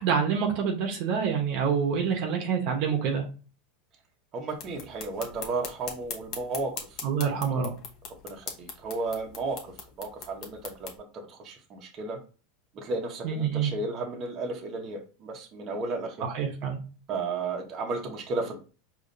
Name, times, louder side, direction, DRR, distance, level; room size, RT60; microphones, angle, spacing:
voice 1, 0.0-3.2 7.0-7.7 13.2-13.7 16.2-16.8, right 7 dB, 55° right, 2 dB, 1.1 m, -27 dB
voice 2, 4.3-6.7 7.2-7.7 8.2-9.6 10.0-12.2 12.8-16.3 17.1-18.6, right 3 dB, 35° right, 1 dB, 1.2 m, -33 dB
sound 1, 4.5-11.0, left 6 dB, 45° left, 1.2 m, -41 dB
4.9 x 3.1 x 2.7 m, 0.35 s
supercardioid pair, 130°, 0 cm